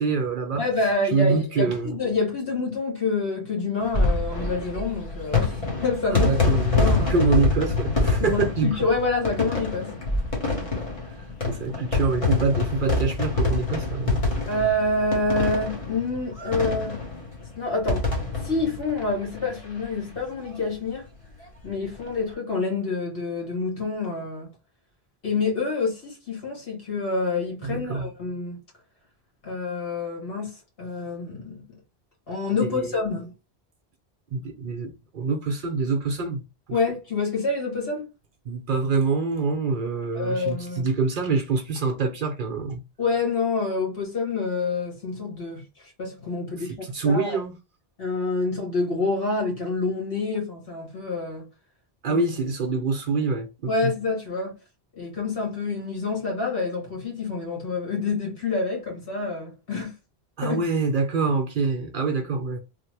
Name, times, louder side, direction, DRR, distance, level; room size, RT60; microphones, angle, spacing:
voice 1, 0.0-0.6 1.1-2.0 6.1-8.8 11.5-14.2 27.6-28.1 32.6-32.9 34.3-36.4 36.7-36.8 38.5-42.8 46.6-47.5 52.0-53.9 60.4-62.6, right 4 dB, 55° right, 0.7 m, -25 dB
voice 2, 0.6-6.3 6.7-7.1 8.2-9.9 14.5-17.0 17.5-18.1 18.4-21.1 21.6-24.5 25.2-28.6 29.4-31.6 32.3-33.3 36.7-38.1 40.1-40.9 43.0-47.4 48.0-51.5 52.1-52.2 53.7-54.6 55.0-59.9 60.4-60.6, left 3 dB, 65° left, 1.6 m, -27 dB
sound 1, 3.8-19.8 20.2-20.3 20.4-20.5 21.8-22.1, left 3 dB, 35° left, 1.1 m, -26 dB
3.4 x 2.1 x 3.2 m
omnidirectional pair, 1.1 m